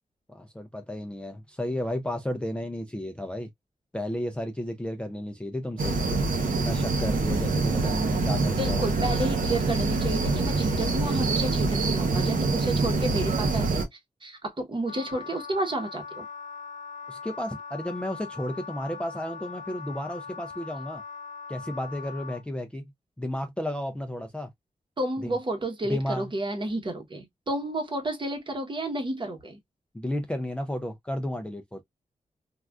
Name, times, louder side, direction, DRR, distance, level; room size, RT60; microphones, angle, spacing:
voice 1, 0.3-3.5 3.9-6.0 6.5-8.9 17.1-21.0 21.5-22.9 23.2-24.5 25.2-25.3 25.8-26.3 29.9-31.8, left 1 dB, 10° left, 0.4 m, -33 dB
sound 1, 5.8-13.8, right 3 dB, 85° right, 0.8 m, -25 dB
voice 2, 8.6-13.8 14.2-16.3 25.0-29.6, right 1 dB, 35° right, 0.9 m, -31 dB
Wind instrument woodwind instrument, 14.9-22.4, left 5 dB, 60° left, 0.7 m, -41 dB
3.4 x 2.3 x 2.2 m
wide cardioid pair, 120°, 14 cm